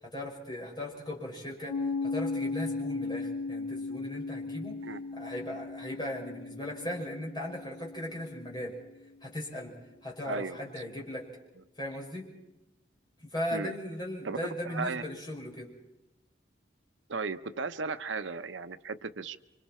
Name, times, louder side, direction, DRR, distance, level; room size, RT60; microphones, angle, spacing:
voice 1, 0.0-4.8 5.1-8.8 9.2-9.8 10.0-11.3 11.8-12.3 13.2-15.7, left 1 dB, 25° left, -2 dB, 5.6 m, -38 dB
Piano, 1.7-8.9, left 3 dB, 5° left, 6.2 m, -37 dB
voice 2, 10.2-10.9 13.5-13.7 14.2-15.0 17.1-19.4, right 4 dB, 80° right, 11 dB, 0.8 m, -36 dB
28.5 x 25.0 x 4.4 m, 0.98 s
head